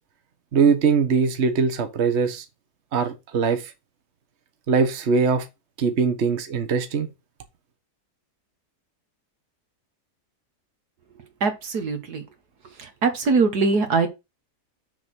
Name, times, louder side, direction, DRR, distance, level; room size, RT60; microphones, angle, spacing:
voice 1, 0.5-2.4 2.9-3.7 4.7-5.5 5.8-7.1, right 5 dB, 45° right, 1.4 m, -21 dB
voice 2, 11.4-12.2 12.8-14.1, right 4 dB, 70° right, 2.0 m, -22 dB
7.0 x 3.9 x 6.2 m
omnidirectional pair, 1.8 m